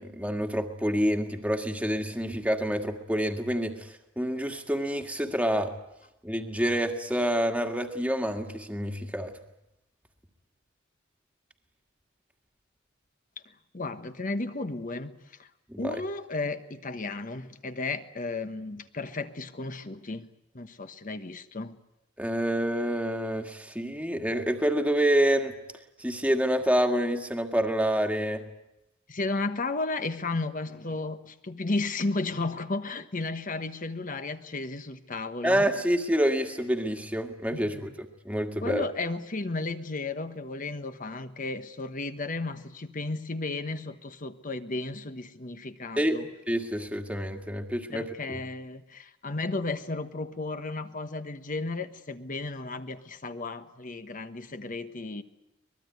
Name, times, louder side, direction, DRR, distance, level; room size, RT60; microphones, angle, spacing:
voice 1, 0.0-3.9 4.2-5.7 6.2-9.3 15.7-16.0 22.2-25.5 26.0-28.4 35.4-37.9 38.3-38.8 46.0-46.2 46.5-48.4, equal, 5° right, 4 dB, 1.8 m, -27 dB
voice 2, 13.7-15.5 15.8-20.3 20.5-21.7 29.1-35.7 37.5-37.9 38.6-46.3 47.9-55.2, left 3 dB, 40° left, 9 dB, 1.2 m, -34 dB
23.5 x 21.0 x 9.5 m, 0.89 s
head